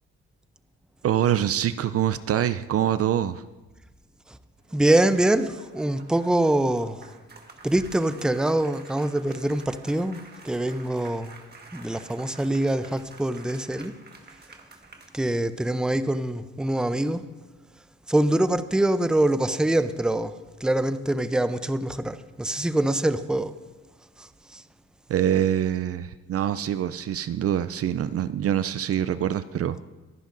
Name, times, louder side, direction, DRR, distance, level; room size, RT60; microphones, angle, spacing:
voice 1, 1.0-3.4 25.1-29.8, right 10 dB, 50° right, 0.5 m, -25 dB
sound 1, 4.6-15.6, right 3 dB, 35° right, 1.6 m, -50 dB
voice 2, 4.7-7.1 7.6-11.4 11.7-13.9 15.1-17.3 18.1-23.6 24.2-24.6, right 1 dB, 5° right, 0.6 m, -24 dB
24.5 x 11.0 x 2.6 m
cardioid pair, 90°, 30 cm